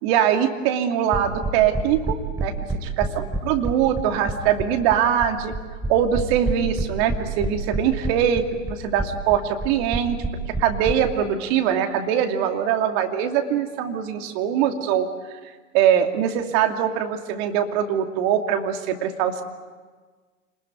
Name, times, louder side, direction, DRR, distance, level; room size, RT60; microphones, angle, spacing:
voice 1, 0.0-2.5 3.2-5.5 5.9-10.2 10.6-15.1 15.7-19.4, right 9 dB, 50° right, 5 dB, 2.7 m, -22 dB
sound 1, 1.1-10.9, right 2 dB, 10° right, 4.1 m, -27 dB
28.5 x 20.5 x 9.3 m, 1.4 s
hypercardioid pair, 95°, 40 cm